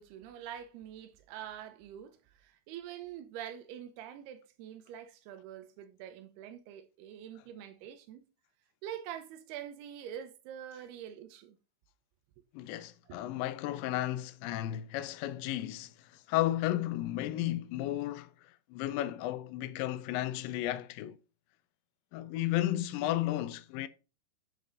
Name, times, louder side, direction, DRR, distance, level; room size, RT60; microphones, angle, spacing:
voice 1, 0.0-8.2 8.8-11.6 13.1-13.2, right 10 dB, 90° right, 2.8 m, -45 dB
voice 2, 12.5-21.2 22.1-23.9, left 14 dB, 85° left, 2.0 m, -33 dB
9.6 x 3.8 x 3.7 m
omnidirectional pair, 4.5 m